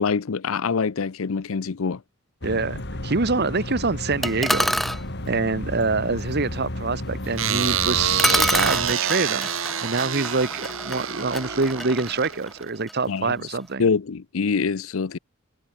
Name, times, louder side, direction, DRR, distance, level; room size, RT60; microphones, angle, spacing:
voice 1, 0.0-2.0 13.1-13.5 13.8-15.2, left 5 dB, 70° left, 0.6 m, -25 dB
sound 1, 2.4-8.9, left 1 dB, 55° left, 3.6 m, -33 dB
voice 2, 2.4-4.7 5.3-13.9, right 3 dB, 50° right, 1.3 m, -25 dB
sound 2, 4.2-5.0 7.6-7.7 8.2-13.0, equal, ahead, 0.8 m, -27 dB
sound 3, 7.4-12.7, right 9 dB, 65° right, 2.2 m, -27 dB
head